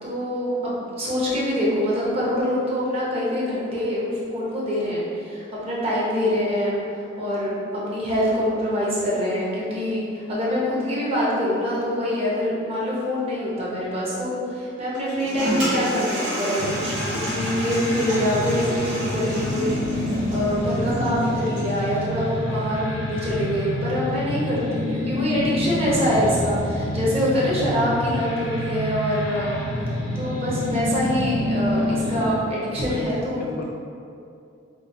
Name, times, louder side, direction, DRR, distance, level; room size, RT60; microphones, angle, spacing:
voice 1, 0.0-6.8 7.2-29.6 30.1-33.5, equal, 30° right, -7 dB, 0.8 m, -25 dB
Toilet flush, 14.9-21.9, equal, 80° right, 1.1 m, -30 dB
sound 1, 16.6-32.3, left 1 dB, 90° left, 0.6 m, -28 dB
voice 2, 32.9-33.7, left 2 dB, 50° left, 1 dB, 0.4 m, -34 dB
4.8 x 2.3 x 2.6 m, 2.5 s
head